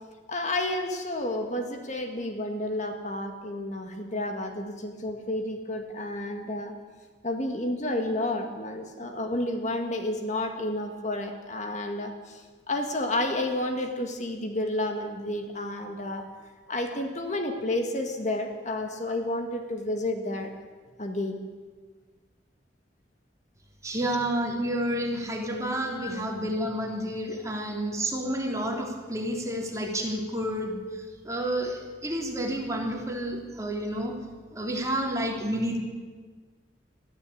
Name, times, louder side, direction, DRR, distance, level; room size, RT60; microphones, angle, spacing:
voice 1, 0.3-6.7 7.2-16.2 16.7-20.5 21.0-21.4 26.0-26.1, left 1 dB, 40° left, 4 dB, 1.9 m, -31 dB
voice 2, 23.8-34.1 34.5-35.8, right 1 dB, 15° right, 0 dB, 3.2 m, -30 dB
21.5 x 14.0 x 8.6 m, 1.5 s
head